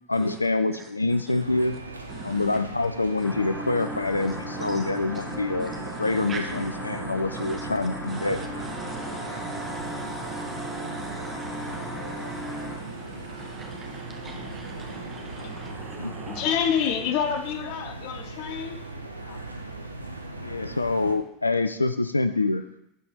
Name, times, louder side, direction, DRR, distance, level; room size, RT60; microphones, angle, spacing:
voice 1, 0.1-1.7 2.2-8.4 16.0-16.1 20.4-22.6, left 3 dB, 85° left, 0.3 m, -26 dB
sound 1, 1.4-21.1, right 2 dB, 90° right, 0.6 m, -39 dB
voice 2, 2.1-2.6 3.2-3.3 3.7-16.5, right 3 dB, 25° right, 1.3 m, -40 dB
sound 2, 3.2-12.8, equal, 5° left, 1.4 m, -37 dB
voice 3, 16.3-19.4, left 8 dB, 55° left, 0.7 m, -28 dB
10.5 x 4.3 x 3.6 m
figure-of-eight pair, 80°, 0 cm